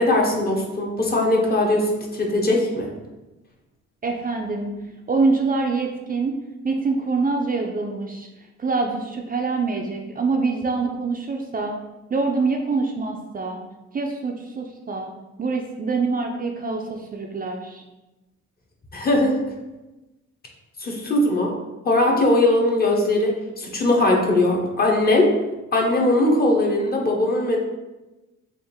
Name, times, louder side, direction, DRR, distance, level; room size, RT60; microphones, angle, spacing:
voice 1, 0.0-2.9 18.9-19.4 20.8-21.5 21.8-25.3 25.7-27.6, left 1 dB, 30° left, -1 dB, 0.9 m, -20 dB
voice 2, 4.0-4.7 5.1-6.4 6.6-8.3 8.6-11.8 12.1-13.6 13.9-15.1 15.4-17.8, right 4 dB, 30° right, 2 dB, 0.4 m, -25 dB
3.6 x 2.5 x 4.2 m, 1.1 s
cardioid pair, 90°, 30 cm